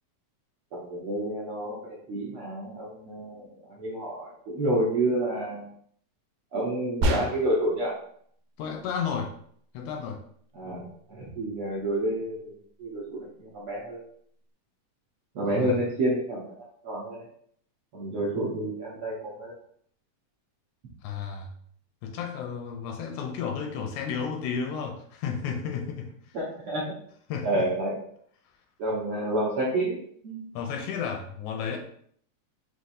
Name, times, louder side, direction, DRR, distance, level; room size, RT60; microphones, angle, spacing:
voice 1, 0.7-5.6 6.5-7.9 10.5-12.5 12.8-14.0 15.3-16.5 16.8-17.2 17.9-19.5 26.3-27.0 27.4-28.0 28.8-30.0 30.2-30.5, right 1 dB, 65° right, -6 dB, 1.5 m, -29 dB
sound 1, 7.0-7.7, equal, 85° right, 2.1 m, -26 dB
voice 2, 8.6-9.3 9.7-10.2 15.6-15.8 21.0-21.5 22.0-26.1 27.3-27.7 30.5-31.8, left 6 dB, 80° left, 2 dB, 1.9 m, -32 dB
5.8 x 3.0 x 2.6 m, 0.63 s
omnidirectional pair, 3.5 m